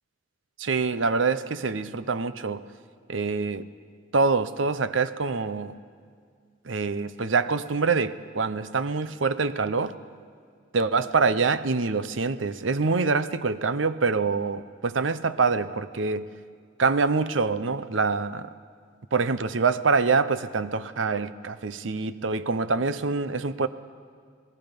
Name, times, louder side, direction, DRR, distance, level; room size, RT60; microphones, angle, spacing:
voice 1, 0.6-2.6 3.1-3.7 4.1-5.7 6.7-9.9 10.7-16.3 16.8-18.5 19.1-23.7, right 4 dB, 85° right, 13 dB, 0.8 m, -25 dB
27.5 x 19.0 x 5.3 m, 2.1 s
head